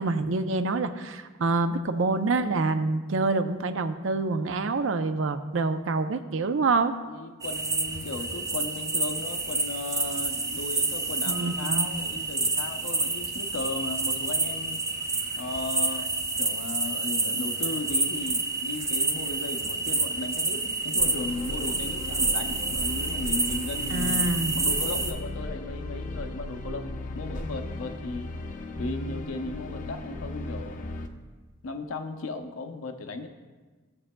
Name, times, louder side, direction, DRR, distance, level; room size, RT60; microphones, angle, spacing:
voice 1, 0.0-6.9 11.3-11.9 23.9-24.6, right 3 dB, 65° right, 10 dB, 0.5 m, -26 dB
voice 2, 7.1-14.9 15.4-24.3 24.5-28.3 28.8-30.9 31.6-33.3, left 3 dB, 85° left, 7 dB, 0.7 m, -36 dB
sound 1, 7.4-25.1, right 3 dB, 15° right, 0.6 m, -28 dB
sound 2, 21.0-31.1, left 2 dB, 40° left, 0.6 m, -36 dB
16.0 x 7.4 x 2.2 m, 1.3 s
head